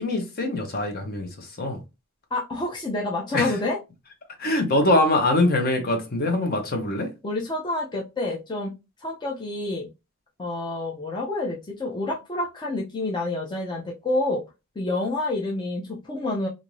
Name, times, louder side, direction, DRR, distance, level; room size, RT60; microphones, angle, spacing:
voice 1, 0.0-1.8 3.3-3.5 4.4-7.1, left 2 dB, 45° left, 0.8 m, -23 dB
voice 2, 2.3-3.8 7.2-8.7 9.0-9.9 10.4-14.4 14.8-16.5, left 2 dB, 20° left, 0.5 m, -28 dB
2.5 x 2.5 x 3.0 m
head